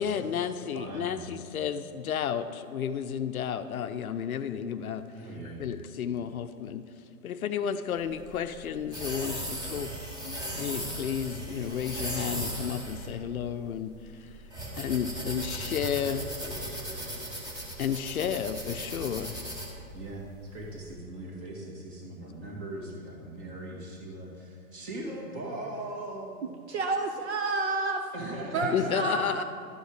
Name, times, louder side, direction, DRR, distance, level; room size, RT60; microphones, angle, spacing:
voice 1, 0.0-5.0 5.4-6.9 7.2-9.9 10.2-14.3 14.8-16.3 17.8-19.4 28.7-29.4, left 8 dB, 70° left, 11 dB, 0.6 m, -32 dB
voice 2, 0.7-1.2 5.1-5.7 19.9-26.5 28.1-29.1, right 1 dB, 30° right, -2 dB, 2.0 m, -39 dB
sound 1, 7.9-20.9, right 1 dB, 10° right, 1.1 m, -37 dB
voice 3, 26.7-28.0 28.5-29.4, right 3 dB, 50° right, 4 dB, 0.7 m, -29 dB
11.5 x 5.3 x 5.0 m, 2.6 s
hypercardioid pair, 130°, 44 cm